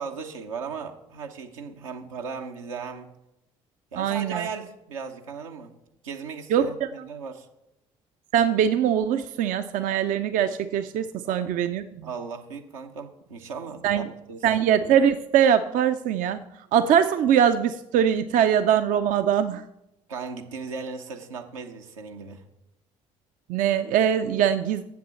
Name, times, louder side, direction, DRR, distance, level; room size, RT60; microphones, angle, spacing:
voice 1, 0.0-3.1 3.9-5.7 6.0-7.5 11.2-11.4 12.0-14.4 20.1-22.4, right 5 dB, 80° right, 4 dB, 0.8 m, -37 dB
voice 2, 4.0-4.5 6.5-6.9 8.3-12.1 13.8-14.1 14.4-16.4 16.7-19.6 23.5-24.8, right 9 dB, 50° right, 10 dB, 0.5 m, -22 dB
7.4 x 5.9 x 7.4 m, 0.88 s
figure-of-eight pair, 50°, 17 cm